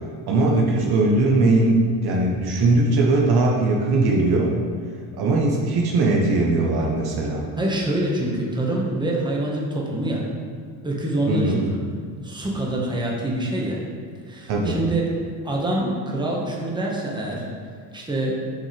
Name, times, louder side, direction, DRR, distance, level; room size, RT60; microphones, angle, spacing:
voice 1, 0.3-4.5 5.1-7.4 11.3-11.6 14.5-14.8, right 2 dB, 50° right, -1 dB, 1.3 m, -20 dB
voice 2, 7.6-10.2 10.8-11.8 12.2-13.8 14.3-15.1 15.4-17.5 17.9-18.4, right 1 dB, 10° right, -3 dB, 1.5 m, -25 dB
9.1 x 5.2 x 3.5 m, 2.1 s
hypercardioid pair, 80°, 50 cm